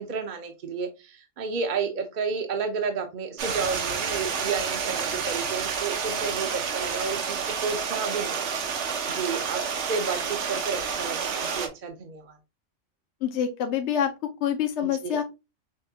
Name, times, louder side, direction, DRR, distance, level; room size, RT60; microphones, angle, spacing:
voice 1, 0.0-8.5 9.1-12.4 15.0-15.2, right 5 dB, 50° right, 4 dB, 0.7 m, -31 dB
Stream, 3.4-11.7, right 6 dB, 70° right, 1.0 m, -29 dB
voice 2, 13.2-14.1 14.4-15.2, left 9 dB, 70° left, 6 dB, 0.8 m, -26 dB
6.3 x 2.2 x 2.7 m, 0.26 s
omnidirectional pair, 1.3 m